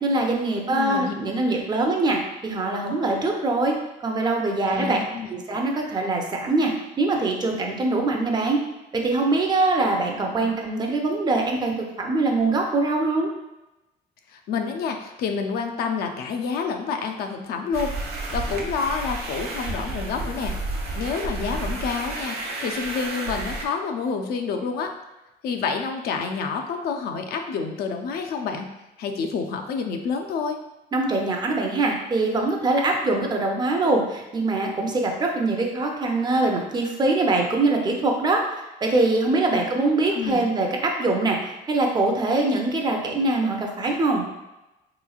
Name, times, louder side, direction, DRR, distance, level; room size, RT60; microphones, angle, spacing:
voice 1, 0.0-3.8 4.0-5.0 5.3-6.7 7.0-8.6 8.9-13.3 30.9-38.4 38.8-44.2, right 2 dB, 25° right, 1 dB, 0.6 m, -23 dB
voice 2, 0.7-1.1 4.7-5.3 10.4-10.5 14.3-20.5 21.0-24.9 25.4-28.7 29.0-30.6 39.4-39.6 40.1-40.4, left 5 dB, 65° left, 4 dB, 0.5 m, -28 dB
sound 1, 17.7-23.6, right 2 dB, 70° right, 0.7 m, -31 dB
3.4 x 3.0 x 2.3 m, 0.99 s
cardioid pair, 110°, 17 cm